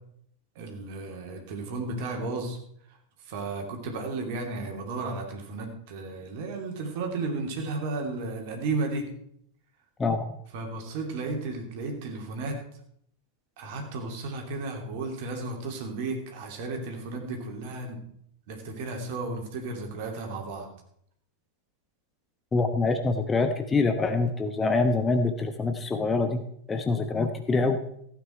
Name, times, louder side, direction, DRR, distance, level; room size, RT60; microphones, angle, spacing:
voice 1, 0.5-2.6 2.9-3.0 3.2-9.1 10.5-12.6 13.6-18.0 18.5-20.7, right 3 dB, 50° right, 2 dB, 2.8 m, -34 dB
voice 2, 10.0-10.4 22.5-27.8, left 3 dB, 15° left, 7 dB, 1.0 m, -25 dB
15.5 x 8.8 x 4.5 m, 0.70 s
figure-of-eight pair, 90°, 0 cm